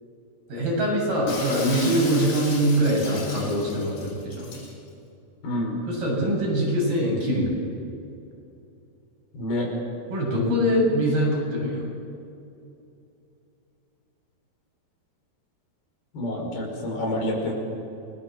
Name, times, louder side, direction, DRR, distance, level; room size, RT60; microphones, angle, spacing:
voice 1, 0.5-4.5 5.9-7.5 10.1-11.8, equal, 65° right, -2 dB, 9.5 m, -23 dB
Shatter, 1.3-4.7, left 3 dB, 90° left, 8.8 m, -35 dB
voice 2, 5.4-5.8 9.3-9.7 16.1-17.5, left 1 dB, 70° left, 0 dB, 7.2 m, -28 dB
29.0 x 22.0 x 7.6 m, 2.7 s
omnidirectional pair, 4.6 m